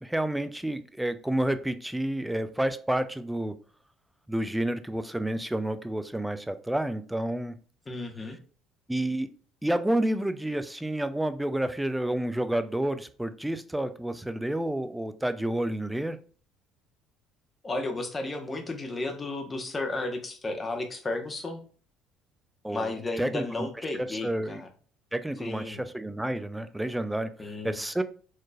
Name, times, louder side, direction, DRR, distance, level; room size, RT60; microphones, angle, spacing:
voice 1, 0.0-3.5 4.3-7.6 8.9-9.3 9.6-16.2 22.6-22.9 23.2-23.7 24.0-24.6 25.1-28.0, right 1 dB, 5° right, 11 dB, 0.5 m, -30 dB
voice 2, 7.9-8.4 17.6-21.6 22.7-24.7 25.4-25.8 27.4-27.8, left 2 dB, 30° left, 5 dB, 1.1 m, -33 dB
4.6 x 3.0 x 2.3 m, 0.41 s
hypercardioid pair, 70°, 0 cm